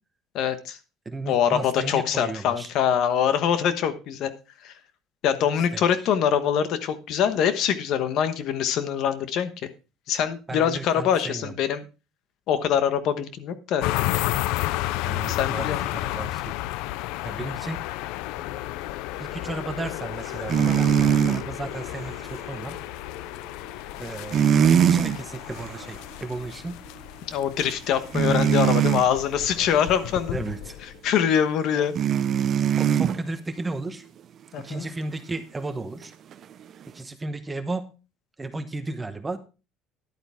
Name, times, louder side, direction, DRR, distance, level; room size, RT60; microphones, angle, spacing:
voice 1, 0.3-0.8 1.3-4.3 4.6-4.7 5.2-9.7 10.1-11.8 12.5-13.8 15.3-15.8 27.3-30.4 31.0-31.9 34.5-34.9, left 8 dB, 55° left, 11 dB, 1.1 m, -24 dB
voice 2, 1.0-2.7 5.7-5.8 10.5-11.5 15.0-16.5 17.2-17.8 19.2-22.8 24.0-24.4 24.7-26.8 28.3-28.4 30.3-30.8 31.7-31.9 32.8-34.0 34.6-36.1 36.9-37.9 38.4-39.4, right 2 dB, 15° right, 10 dB, 0.9 m, -34 dB
sound 1, 13.8-31.1, left 16 dB, 75° left, 0.4 m, -32 dB
sound 2, 20.5-21.4 24.3-25.2 25.6-25.8 28.1-29.1 32.0-33.2 36.3-36.4, right 9 dB, 40° right, 0.5 m, -20 dB
11.0 x 8.7 x 3.5 m, 0.31 s
cardioid pair, 145°, 0 cm